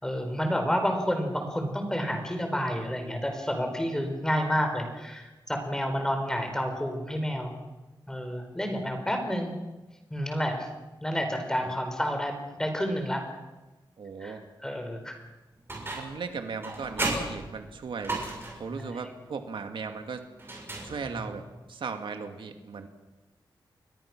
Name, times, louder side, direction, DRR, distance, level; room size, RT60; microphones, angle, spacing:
voice 1, 0.0-7.5 8.1-9.5 10.1-10.7 11.0-13.2 14.2-14.3 14.6-15.1 18.8-19.0, equal, 5° left, 5 dB, 4.4 m, -29 dB
voice 2, 14.0-14.4 15.9-18.2 18.6-21.4 21.7-22.9, right 5 dB, 85° right, 6 dB, 2.2 m, -37 dB
sound 1, 15.7-16.2 16.6-18.7 20.4-21.3, right 2 dB, 30° right, 7.4 m, -34 dB
30.0 x 22.5 x 6.1 m, 1.1 s
wide cardioid pair, 170°, 8 cm